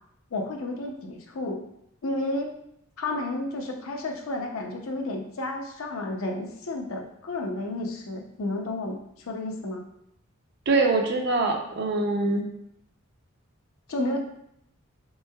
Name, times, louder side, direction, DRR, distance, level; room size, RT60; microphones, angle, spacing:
voice 1, 0.3-1.6 2.0-2.5 3.0-9.0 9.3-9.8 13.9-14.2, left 2 dB, 70° left, 2 dB, 0.5 m, -31 dB
voice 2, 10.7-12.5, right 3 dB, 50° right, 3 dB, 0.5 m, -24 dB
3.5 x 3.1 x 2.2 m, 0.75 s
head